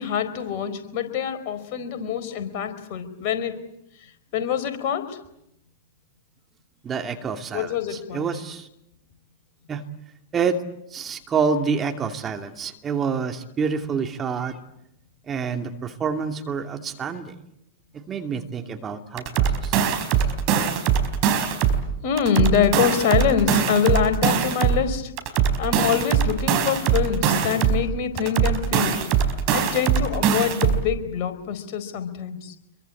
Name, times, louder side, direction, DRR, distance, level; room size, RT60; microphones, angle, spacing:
voice 1, 0.0-3.5 4.0-5.2 7.5-8.3 22.0-25.1 25.4-29.0 29.5-32.5, left 8 dB, 50° left, 8 dB, 4.5 m, -25 dB
voice 2, 6.8-8.7 9.7-9.8 10.3-10.6 10.9-14.6 15.3-17.4 17.9-20.0, right 5 dB, 25° right, 5 dB, 2.6 m, -27 dB
sound 1, 19.2-21.8 22.2-24.8 25.2-27.8 28.2-30.8, right 8 dB, 45° right, 4.6 m, -21 dB
27.0 x 23.5 x 8.6 m, 0.79 s
figure-of-eight pair, 95°, 0 cm